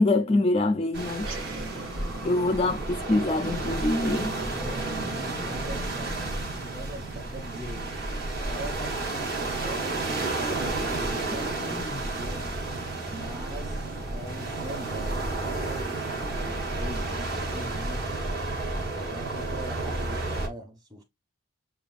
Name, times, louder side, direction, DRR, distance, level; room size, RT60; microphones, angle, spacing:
voice 1, 0.0-1.3 2.2-4.3 11.6-12.0, left 2 dB, 30° left, 0.3 m, -25 dB
sound 1, 0.9-20.5, right 2 dB, 50° right, 1.4 m, -31 dB
sound 2, 1.1-7.8, right 1 dB, 75° right, 1.4 m, -40 dB
voice 2, 4.5-7.9 8.4-12.5 13.1-15.9 16.2-18.1 19.1-21.0, equal, 20° right, 1.4 m, -42 dB
6.9 x 2.4 x 2.4 m
head